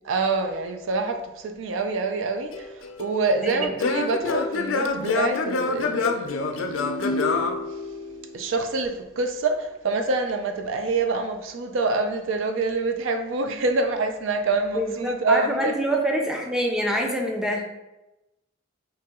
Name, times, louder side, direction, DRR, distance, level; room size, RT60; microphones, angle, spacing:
voice 1, 0.0-7.5 8.3-15.7, right 3 dB, 75° right, 0.4 m, -26 dB
Singing / Plucked string instrument, 2.5-8.4, left 4 dB, 75° left, 0.4 m, -27 dB
voice 2, 14.7-17.6, equal, 5° right, 0.4 m, -26 dB
3.0 x 2.8 x 3.5 m
head